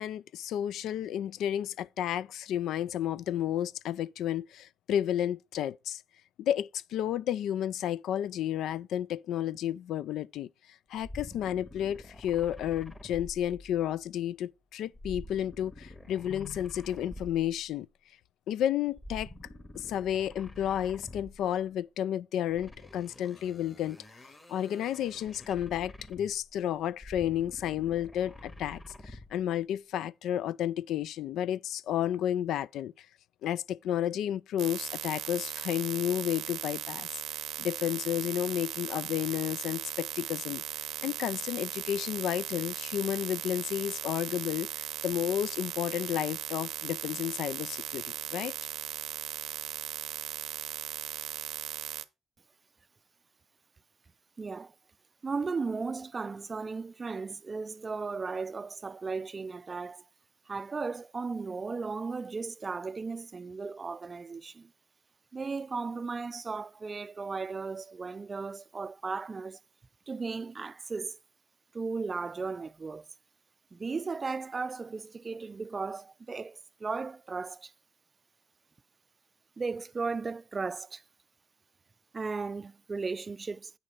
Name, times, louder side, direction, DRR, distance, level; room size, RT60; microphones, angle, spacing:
voice 1, 0.0-6.0 6.4-10.5 10.9-17.9 18.5-19.3 19.8-24.0 24.5-28.8 29.1-33.1 33.4-37.1 37.6-40.6 41.0-48.5, left 11 dB, 80° left, 0.3 m, -32 dB
sound 1, 11.0-14.0 14.9-17.6 18.9-21.5 22.5-26.5 26.9-29.4, left 1 dB, 20° left, 1.9 m, -47 dB
sound 2, 34.6-52.0, right 12 dB, 85° right, 0.7 m, -38 dB
voice 2, 54.4-54.7 55.2-60.0 60.5-64.7 65.3-69.6 70.1-71.2 71.7-73.1 73.7-77.7 79.6-81.0 82.1-83.7, right 4 dB, 30° right, 0.4 m, -36 dB
8.9 x 6.5 x 3.9 m
cardioid pair, 90°, 0 cm